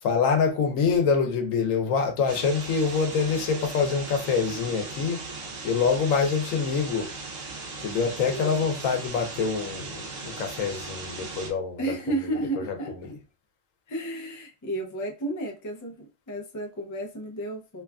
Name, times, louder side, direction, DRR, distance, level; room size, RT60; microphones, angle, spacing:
voice 1, 0.0-5.3 5.6-7.1 7.8-11.9 12.2-13.1, left 5 dB, 90° left, 1.1 m, -26 dB
sound 1, 2.3-11.5, right 3 dB, 70° right, 1.1 m, -38 dB
voice 2, 8.2-8.6 11.8-12.9 13.9-17.8, right 2 dB, 30° left, 0.3 m, -32 dB
3.0 x 2.3 x 2.3 m
omnidirectional pair, 1.3 m